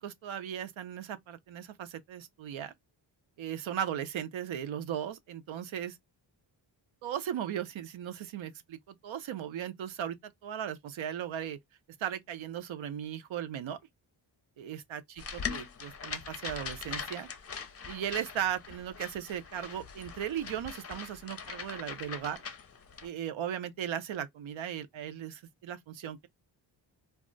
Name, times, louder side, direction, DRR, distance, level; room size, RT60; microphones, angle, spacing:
voice 1, 0.0-2.7 3.4-6.0 7.0-10.2 10.4-11.6 12.0-13.8 14.6-17.3 17.9-22.4 23.0-26.3, right 10 dB, 80° right, 0.6 m, -37 dB
sound 1, 15.2-23.1, left 6 dB, 30° left, 0.5 m, -41 dB
2.3 x 2.0 x 3.7 m
wide cardioid pair, 100°, 47 cm